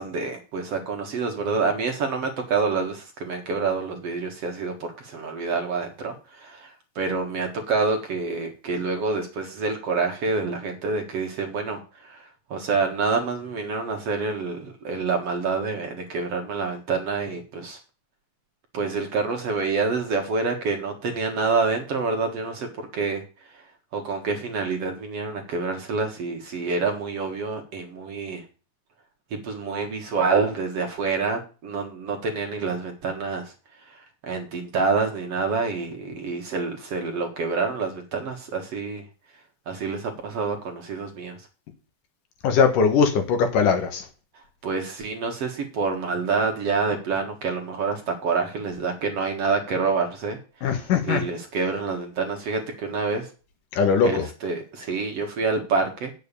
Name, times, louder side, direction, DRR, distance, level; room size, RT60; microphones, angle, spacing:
voice 1, 0.0-17.8 18.7-22.7 22.9-23.2 23.5-23.6 23.9-28.4 29.4-33.5 33.9-39.1 39.7-41.4 44.6-50.4 51.1-53.3 54.0-56.1, right 4 dB, 50° right, 3 dB, 2.2 m, -27 dB
voice 2, 42.4-44.1 50.6-51.2 53.7-54.3, left 6 dB, 70° left, 5 dB, 2.8 m, -20 dB
9.2 x 7.1 x 6.8 m, 0.35 s
omnidirectional pair, 4.1 m